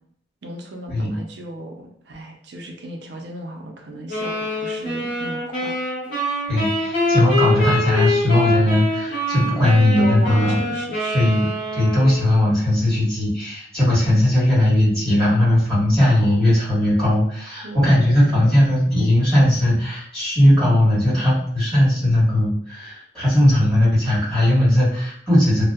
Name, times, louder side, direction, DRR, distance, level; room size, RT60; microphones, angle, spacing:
voice 1, 0.4-5.8 10.0-11.3 17.6-18.6, right 1 dB, 60° right, 2 dB, 0.4 m, -35 dB
sound 1, 4.1-12.5, left 1 dB, 45° left, 1.4 m, -24 dB
voice 2, 6.5-10.5 11.1-11.5 11.7-25.6, left 1 dB, 5° left, -12 dB, 1.5 m, -18 dB
2.6 x 2.1 x 2.3 m, 0.65 s
head